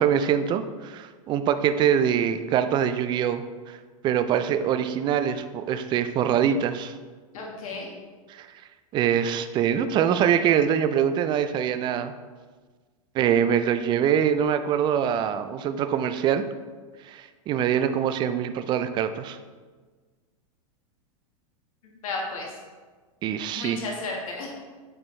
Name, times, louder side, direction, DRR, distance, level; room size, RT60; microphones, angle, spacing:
voice 1, 0.0-3.4 4.0-6.9 8.3-8.5 8.9-12.1 13.1-16.4 17.1-19.4 23.2-23.8, right 9 dB, 25° right, 10 dB, 0.4 m, -24 dB
voice 2, 7.3-7.9 22.0-22.5 23.6-24.5, left 3 dB, 75° left, -1 dB, 1.6 m, -33 dB
8.6 x 4.5 x 3.2 m, 1.4 s
hypercardioid pair, 125°, 18 cm